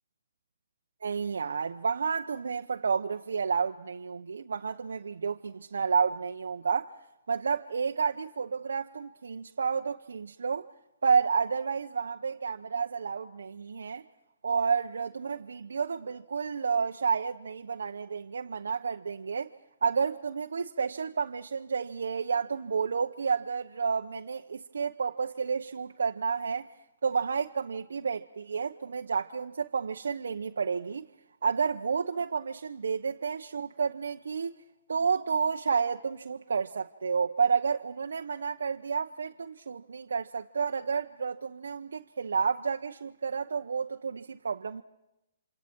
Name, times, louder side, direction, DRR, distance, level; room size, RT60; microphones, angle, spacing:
voice 1, 1.0-6.9 7.3-10.7 11.0-14.0 14.4-19.5 19.8-26.7 27.0-31.1 31.4-34.6 34.9-44.8, right 5 dB, 85° right, 0.9 m, -30 dB
28.5 x 27.5 x 4.6 m
hypercardioid pair, 155°, 0 cm